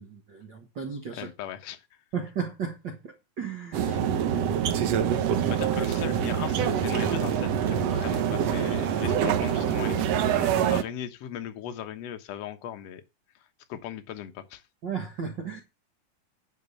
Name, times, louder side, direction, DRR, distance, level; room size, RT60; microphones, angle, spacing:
voice 1, 0.0-1.3 2.1-4.6 14.8-15.6, right 6 dB, 50° right, 1.4 m, -35 dB
voice 2, 1.1-1.8 3.8-4.0 5.5-10.2 10.7-13.0 13.7-14.6, left 10 dB, 60° left, 1.8 m, -38 dB
sound 1, 3.7-10.8, right 9 dB, 65° right, 1.6 m, -25 dB
10.5 x 5.3 x 6.8 m
omnidirectional pair, 4.1 m